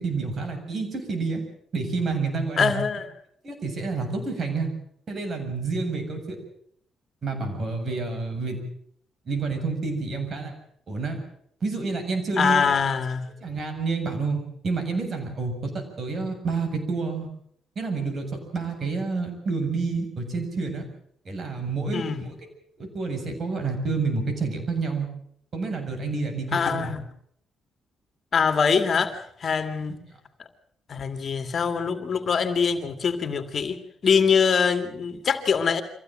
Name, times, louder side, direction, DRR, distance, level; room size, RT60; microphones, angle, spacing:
voice 1, 0.0-1.4 1.7-2.7 3.4-4.7 5.1-6.4 7.2-8.6 9.3-10.5 10.9-11.2 11.6-12.8 13.4-15.7 16.0-17.3 17.8-18.3 18.5-20.9 21.3-22.3 22.8-25.1 25.5-26.9, right 4 dB, 45° right, 4 dB, 7.5 m, -29 dB
voice 2, 2.6-3.1 12.4-13.3 21.9-22.2 26.5-27.0 28.3-30.0 30.9-33.8 34.0-35.8, left 6 dB, 45° left, 8 dB, 2.4 m, -23 dB
25.0 x 15.5 x 7.7 m, 0.67 s
cardioid pair, 90°, 0 cm